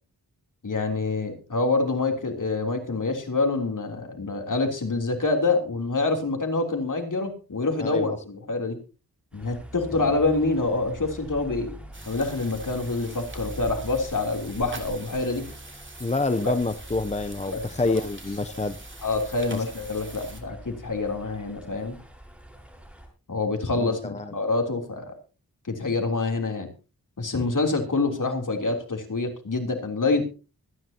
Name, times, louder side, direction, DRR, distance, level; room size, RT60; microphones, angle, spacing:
voice 1, 0.6-8.8 9.3-11.7 12.1-15.4 17.5-17.9 19.0-22.0 23.3-25.1 25.7-26.7 27.2-30.3, left 3 dB, 55° left, 3 dB, 3.3 m, -26 dB
voice 2, 7.8-8.2 9.9-10.1 16.0-18.8 19.5-19.6 23.7-24.3, left 3 dB, 20° left, 11 dB, 0.6 m, -28 dB
sound 1, 9.3-23.1, equal, 5° right, 6.7 m, -43 dB
sound 2, 11.9-20.4, right 2 dB, 30° right, 3.2 m, -45 dB
24.0 x 10.0 x 2.9 m, 0.33 s
wide cardioid pair, 65°, 36 cm